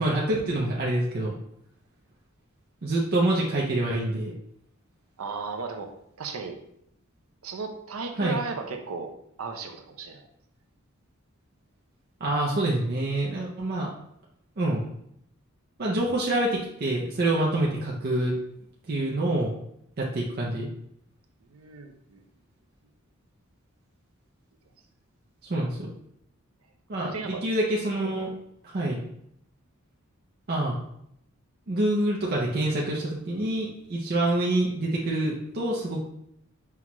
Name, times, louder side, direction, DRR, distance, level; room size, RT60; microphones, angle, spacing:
voice 1, 0.0-1.3 2.8-4.3 8.2-8.4 12.2-13.9 14.6-14.8 15.8-18.3 18.9-19.5 20.0-20.7 25.5-25.9 26.9-28.4 28.6-29.0 30.5-30.8 31.7-36.0, right 1 dB, 45° right, -4 dB, 0.5 m, -26 dB
voice 2, 5.2-6.6 7.4-9.1 9.4-10.2 21.5-22.2 27.0-27.4 28.9-29.0, right 4 dB, 90° right, 5 dB, 0.6 m, -35 dB
5.7 x 2.3 x 3.0 m, 0.74 s
head